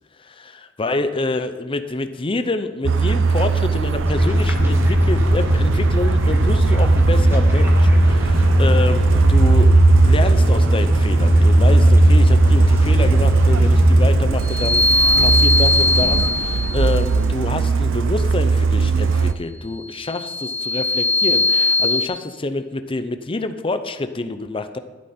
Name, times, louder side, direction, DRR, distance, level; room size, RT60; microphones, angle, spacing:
voice 1, 0.2-9.8 10.0-24.8, left 2 dB, 30° left, 9 dB, 0.7 m, -27 dB
Truck, 2.8-19.3, right 5 dB, 90° right, 0.6 m, -20 dB
sound 1, 4.1-14.1, equal, 15° right, 1.6 m, -16 dB
sound 2, 14.4-17.0 19.9-22.1, left 2 dB, 55° left, 1.5 m, -19 dB
12.0 x 11.0 x 4.4 m, 1.3 s
head